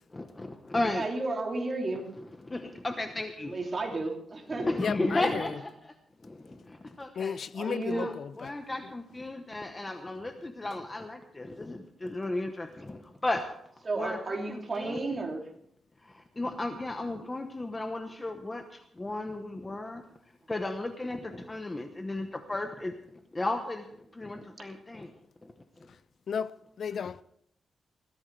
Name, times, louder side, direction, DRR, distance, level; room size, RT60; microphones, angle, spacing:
voice 1, 0.1-1.1 2.4-3.5 4.6-5.9 6.2-7.4 7.9-13.5 14.0-15.0 16.0-20.0 20.5-23.0 23.3-23.9 24.1-25.1 25.4-25.5, left 2 dB, 20° left, 1.1 m, -34 dB
voice 2, 0.9-2.1 3.4-4.7 5.2-5.3 7.5-8.1 13.8-15.5 24.3-24.5, right 2 dB, 30° right, 3.0 m, -33 dB
voice 3, 4.8-5.4 7.2-8.5 26.3-27.2, left 7 dB, 60° left, 0.5 m, -34 dB
21.0 x 15.0 x 3.4 m
wide cardioid pair, 135°, 0 cm